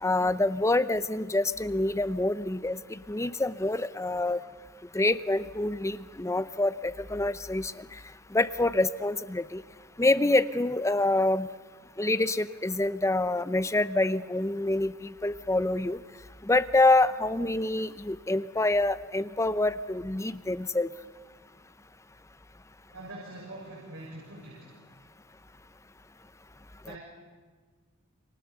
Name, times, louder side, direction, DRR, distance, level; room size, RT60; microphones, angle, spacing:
voice 1, 0.0-4.4 4.9-7.8 8.3-9.6 10.0-11.5 12.0-14.9 15.2-16.0 16.5-20.9, left 2 dB, 15° left, 14 dB, 0.7 m, -26 dB
voice 2, 22.9-24.7 26.8-27.0, right 1 dB, 75° right, -4 dB, 7.0 m, -43 dB
28.0 x 28.0 x 6.9 m, 1.5 s
head